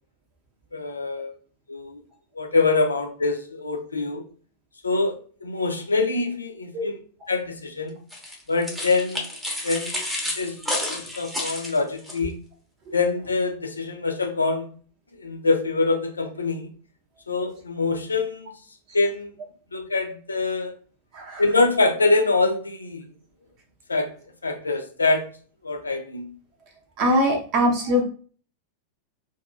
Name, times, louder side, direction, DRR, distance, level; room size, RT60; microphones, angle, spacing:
voice 1, 0.7-1.3 1.7-2.0 2.4-4.2 4.8-5.1 5.4-7.0 7.3-7.9 8.5-9.3 9.6-9.9 10.4-10.6 10.9-12.3 12.9-14.7 15.2-16.7 17.3-18.5 18.9-19.3 19.7-20.7 21.4-23.0 23.9-24.1 24.4-25.2 25.6-26.3, left 3 dB, 75° left, 4 dB, 0.5 m, -24 dB
sound 1, 8.1-12.2, left 1 dB, 5° right, 0.8 m, -31 dB
voice 2, 27.0-28.0, equal, 40° right, 2 dB, 0.7 m, -21 dB
2.7 x 2.6 x 2.3 m, 0.42 s
figure-of-eight pair, 90°, 0 cm